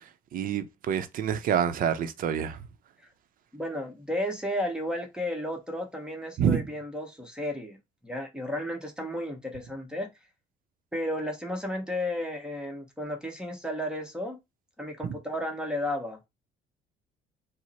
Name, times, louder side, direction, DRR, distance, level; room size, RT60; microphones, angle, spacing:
voice 1, 0.3-2.6 6.4-6.6 15.0-15.1, right 8 dB, 55° right, 0.6 m, -27 dB
voice 2, 3.5-7.8 8.0-10.1 10.9-14.4 14.8-16.3, left 1 dB, 5° right, 0.9 m, -33 dB
4.6 x 2.0 x 4.1 m
cardioid pair, 110°, 17 cm